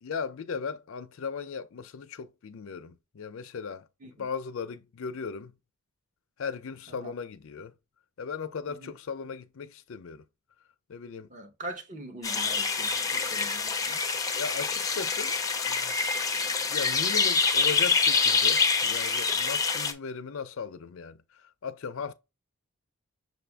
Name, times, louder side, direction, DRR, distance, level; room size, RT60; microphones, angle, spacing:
voice 1, 0.0-5.5 6.4-7.7 8.2-10.2 10.9-11.3 14.3-15.4 15.6-16.0 16.7-22.1, left 5 dB, 65° left, 0.5 m, -37 dB
voice 2, 11.3-14.0, right 1 dB, 35° right, 0.8 m, -42 dB
sound 1, 12.2-19.9, left 5 dB, 15° left, 0.5 m, -26 dB
6.3 x 2.5 x 3.4 m
head